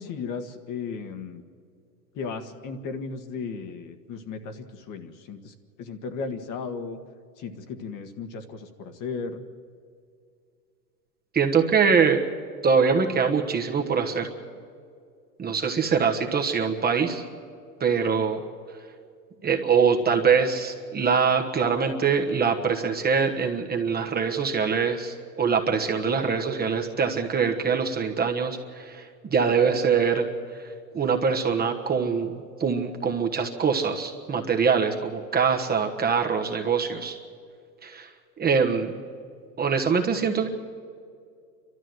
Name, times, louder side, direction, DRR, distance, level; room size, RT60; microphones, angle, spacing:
voice 1, 0.0-1.4 2.1-7.0 7.4-9.4 15.8-16.1, left 5 dB, 40° left, 7 dB, 1.7 m, -35 dB
voice 2, 11.3-12.2 12.6-14.3 15.4-17.2 17.8-18.4 19.4-29.0 29.3-30.3 30.9-37.2 37.8-38.1 38.4-38.9 39.6-40.5, right 6 dB, 20° right, 4 dB, 1.3 m, -23 dB
29.5 x 13.0 x 7.9 m, 2.3 s
hypercardioid pair, 115°, 49 cm